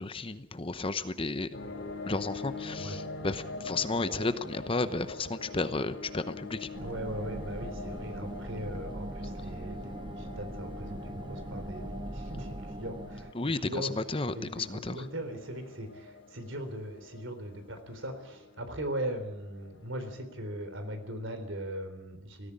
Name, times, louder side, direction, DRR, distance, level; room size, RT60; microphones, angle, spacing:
voice 1, 0.0-1.5 2.1-6.7 13.3-15.1, left 3 dB, 25° left, 12 dB, 0.9 m, -33 dB
sound 1, 1.5-21.2, left 3 dB, 60° left, 4.5 m, -45 dB
sound 2, 6.7-13.3, right 1 dB, 25° right, 0.8 m, -40 dB
voice 2, 6.8-13.3 13.7-13.9 14.4-22.5, right 1 dB, 75° right, 8 dB, 3.8 m, -39 dB
19.0 x 14.5 x 9.9 m, 0.86 s
head